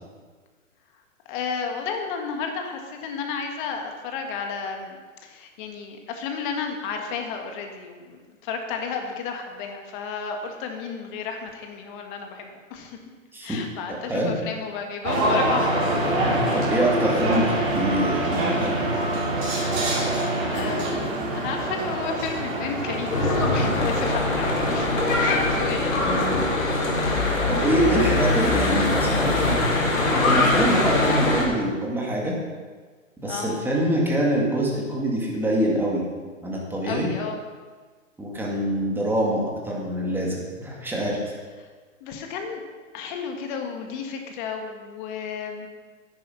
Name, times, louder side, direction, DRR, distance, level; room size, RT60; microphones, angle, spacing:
voice 1, 1.3-13.0 13.4-15.7 20.5-26.3 26.8-26.9 27.5-27.6 33.3-33.6 36.8-37.4 42.0-42.7 42.9-45.7, left 5 dB, 40° left, 4 dB, 1.7 m, -32 dB
voice 2, 13.9-14.3 16.2-18.8 26.0-26.9 27.2-29.7 30.1-32.4 33.2-36.0 36.4-37.1 38.2-41.2, right 1 dB, 5° right, -3 dB, 2.1 m, -25 dB
sound 1, 15.0-25.4, right 1 dB, 40° right, 4.4 m, -25 dB
Church bell / Traffic noise roadway noise, 23.1-31.4, left 2 dB, 90° left, 3.7 m, -22 dB
10.0 x 9.7 x 5.8 m, 1.5 s
hypercardioid pair, 135°, 39 cm